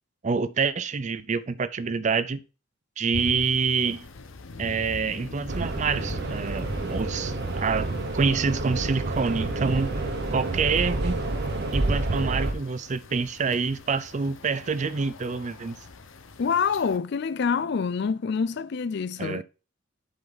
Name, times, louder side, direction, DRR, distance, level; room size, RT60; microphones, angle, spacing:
voice 1, 0.2-2.4 3.0-4.0 4.6-9.9 10.3-11.2 11.7-15.8 19.2-19.4, right 5 dB, 35° right, 0.4 m, -27 dB
sound 1, 3.1-17.0, left 3 dB, 75° left, 0.9 m, -43 dB
sound 2, 5.5-12.5, right 2 dB, 55° right, 1.1 m, -29 dB
voice 2, 16.4-19.4, left 6 dB, 55° left, 0.4 m, -26 dB
7.8 x 5.2 x 4.0 m
head